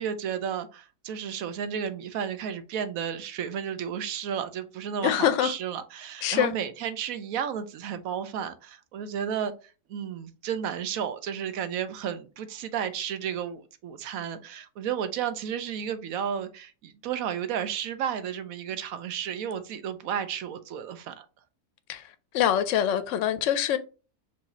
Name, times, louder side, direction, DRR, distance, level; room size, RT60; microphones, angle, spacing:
voice 1, 0.0-21.3, right 8 dB, 70° right, 1.0 m, -33 dB
voice 2, 5.0-5.5 6.2-6.5 21.9-22.0 22.3-23.8, left 10 dB, 65° left, 0.8 m, -24 dB
4.8 x 2.7 x 4.0 m
omnidirectional pair, 1.6 m